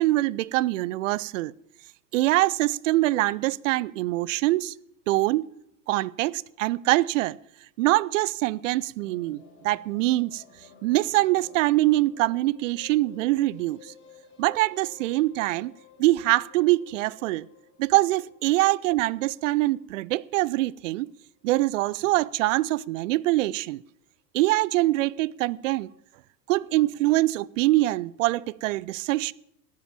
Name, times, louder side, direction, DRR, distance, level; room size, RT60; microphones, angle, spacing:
voice 1, 0.0-1.5 2.1-4.7 5.1-5.5 5.9-7.4 7.8-10.4 10.8-13.9 14.4-15.7 16.0-17.5 17.8-21.1 21.4-23.8 24.3-25.9 26.5-29.3, right 18 dB, 50° right, 0.6 m, -24 dB
sound 1, 9.0-21.1 21.4-21.5 21.7-21.8 22.1-22.2, left 7 dB, 25° left, 6.9 m, -54 dB
14.0 x 10.5 x 7.1 m
figure-of-eight pair, 80°, 49 cm